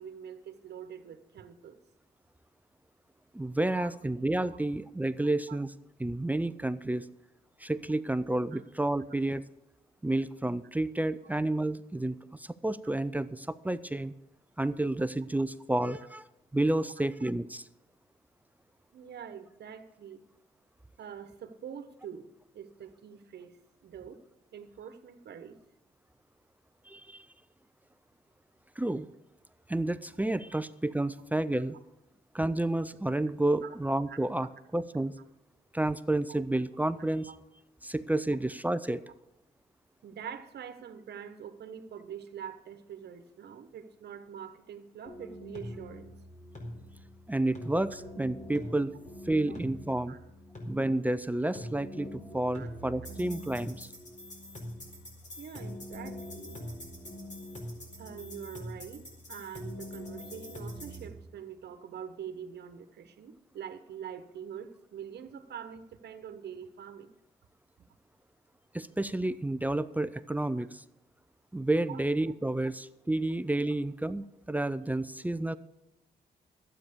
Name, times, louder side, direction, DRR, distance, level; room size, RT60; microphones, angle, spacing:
voice 1, 0.0-1.8 3.8-3.9 4.4-4.6 5.5-5.6 8.5-8.6 16.8-16.9 18.9-20.2 21.0-24.2 24.5-25.6 33.6-33.8 34.1-34.5 37.3-37.4 40.0-46.1 49.5-49.6 50.1-50.2 52.5-52.7 55.4-56.6 58.0-67.1 70.6-70.7 71.9-72.0, right 8 dB, 75° right, 9 dB, 1.3 m, -45 dB
voice 2, 3.3-5.7 6.0-7.1 7.6-9.4 10.0-14.1 14.6-16.3 16.5-17.7 26.9-27.3 28.8-29.1 29.7-31.8 32.3-34.5 34.7-35.1 35.7-37.3 37.8-39.0 47.3-48.9 49.3-50.1 50.7-53.9 68.7-70.8 71.5-75.6, right 1 dB, 10° right, 14 dB, 0.5 m, -30 dB
sound 1, 45.1-61.1, equal, 45° left, 4.4 m, -43 dB
12.0 x 8.9 x 6.8 m, 0.89 s
cardioid pair, 90°, 17 cm